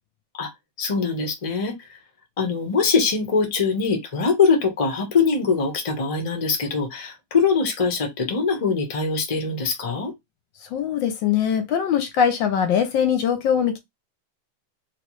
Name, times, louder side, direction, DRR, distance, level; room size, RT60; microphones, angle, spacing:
voice 1, 0.8-1.9 2.4-10.1, left 5 dB, 55° left, 0.3 m, -22 dB
voice 2, 10.6-13.8, left 8 dB, 75° left, 1.2 m, -22 dB
3.1 x 3.0 x 3.0 m
omnidirectional pair, 2.4 m